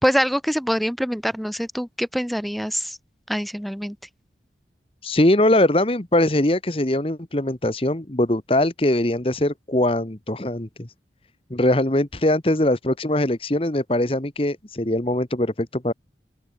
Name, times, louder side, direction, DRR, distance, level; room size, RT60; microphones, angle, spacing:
voice 1, 0.0-3.0 3.3-4.0, equal, ahead, 3.6 m, -24 dB
voice 2, 5.0-10.9 11.5-15.9, left 1 dB, 30° left, 1.4 m, -21 dB
open air
head